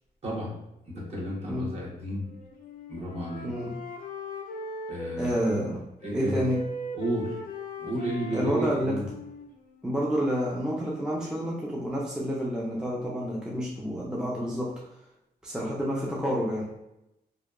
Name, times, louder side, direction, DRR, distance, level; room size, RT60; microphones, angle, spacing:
voice 1, 0.2-0.5 0.9-2.2 2.9-3.5 4.9-5.3 6.0-6.4 7.0-7.4 7.8-9.0, right 1 dB, 40° right, -4 dB, 1.0 m, -32 dB
Wind instrument woodwind instrument, 2.2-5.7 6.0-10.0, left 1 dB, 55° left, 0.4 m, -39 dB
voice 2, 3.4-3.7 5.2-5.8 6.1-6.6 8.3-9.0 9.8-14.7 15.4-16.7, equal, 5° right, -5 dB, 0.4 m, -29 dB
2.7 x 2.2 x 2.3 m, 0.88 s
cardioid pair, 100°, 17 cm